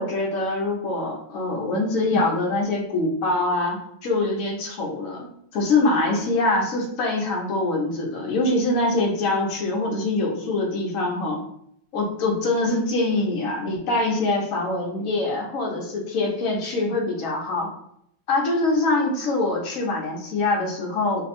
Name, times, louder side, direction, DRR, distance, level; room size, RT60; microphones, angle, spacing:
voice 1, 0.0-5.3 5.5-11.4 11.9-17.7 18.3-21.2, left 2 dB, 55° left, -1 dB, 1.1 m, -24 dB
3.3 x 2.3 x 4.2 m, 0.72 s
omnidirectional pair, 2.2 m